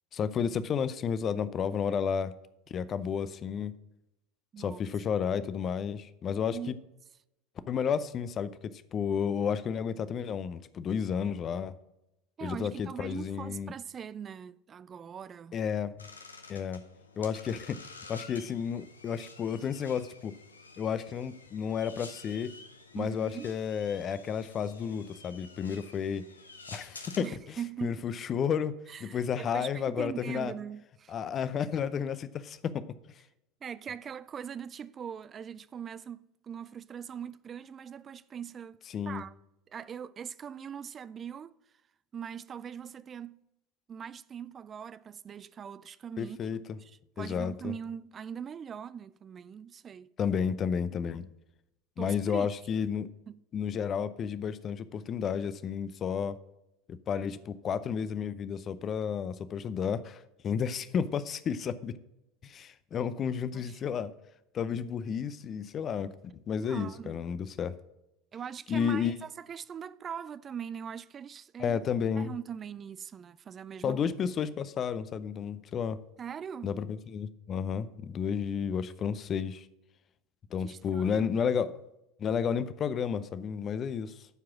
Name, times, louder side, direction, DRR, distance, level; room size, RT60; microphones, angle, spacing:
voice 1, 0.1-2.3 2.7-3.7 4.6-6.8 7.7-8.5 8.9-11.7 12.4-13.7 15.5-15.9 16.5-16.8 17.2-20.3 20.8-22.5 22.9-26.2 26.7-27.6 27.8-28.7 29.0-30.5 31.1-32.8 38.9-39.2 46.2-46.6 47.2-47.7 50.2-51.3 52.0-53.1 53.5-56.4 56.9-61.9 62.4-64.1 64.5-66.1 66.5-67.8 68.7-69.1 71.6-72.3 73.8-76.0 76.6-79.7 80.5-81.7 82.2-84.3, left 7 dB, 35° left, 0.6 m, -32 dB
voice 2, 12.4-15.6 23.0-23.5 27.2-28.0 28.9-31.1 33.6-38.8 39.1-39.3 39.7-41.6 42.1-43.4 43.9-46.4 46.8-50.1 52.0-52.5 53.3-53.4 63.5-64.0 66.6-67.3 68.3-71.8 72.2-74.0 76.2-76.7 80.6-81.3, right 8 dB, 30° right, 0.3 m, -41 dB
sound 1, 16.0-27.3, left 4 dB, 85° left, 0.7 m, -50 dB
11.5 x 4.8 x 6.0 m
figure-of-eight pair, 75°, 0 cm